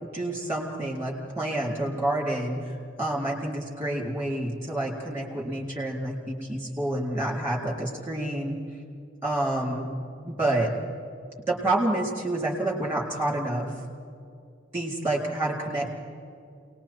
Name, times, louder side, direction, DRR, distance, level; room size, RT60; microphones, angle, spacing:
voice 1, 0.0-8.6 9.2-9.9 10.2-10.7 11.5-13.7 14.7-16.0, right 1 dB, 10° right, -2 dB, 3.8 m, -28 dB
28.0 x 20.5 x 4.5 m, 2.3 s
head